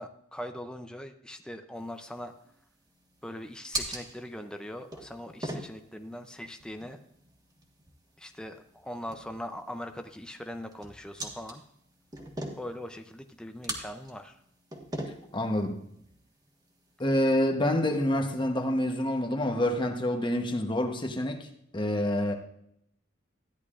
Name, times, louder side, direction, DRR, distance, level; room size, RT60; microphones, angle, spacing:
voice 1, 0.0-2.3 3.2-7.0 8.2-11.6 12.6-14.4, left 1 dB, 5° left, 6 dB, 0.5 m, -41 dB
sound 1, 1.8-17.1, right 1 dB, 20° right, 1.4 m, -43 dB
voice 2, 15.3-15.8 17.0-21.5 21.7-22.3, left 1 dB, 25° left, 5 dB, 1.0 m, -27 dB
13.5 x 10.5 x 2.5 m, 0.73 s
head